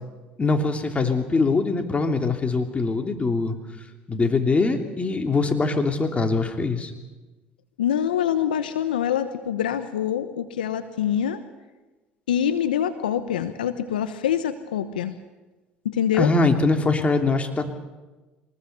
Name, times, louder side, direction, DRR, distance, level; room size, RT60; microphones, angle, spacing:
voice 1, 0.4-3.6 4.1-6.9 16.2-17.7, left 3 dB, 25° left, 5 dB, 3.0 m, -22 dB
voice 2, 7.8-11.4 12.3-15.1 15.8-16.3, left 9 dB, 85° left, 11 dB, 1.0 m, -25 dB
23.5 x 20.0 x 6.8 m, 1.2 s
hypercardioid pair, 65°, 5 cm